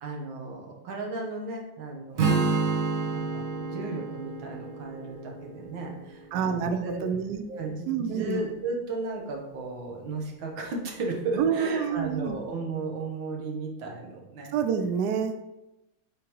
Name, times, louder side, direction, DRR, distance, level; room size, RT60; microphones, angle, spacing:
voice 1, 0.0-2.3 2.7-7.1 7.5-14.6, right 3 dB, 65° right, 0 dB, 1.8 m, -35 dB
Strum, 2.2-6.3, right 4 dB, 50° right, 1.0 m, -29 dB
voice 2, 6.3-7.4 7.9-8.5 11.4-12.4 14.5-15.3, right 7 dB, 90° right, 8 dB, 0.9 m, -27 dB
8.5 x 3.8 x 3.0 m, 0.96 s
omnidirectional pair, 2.4 m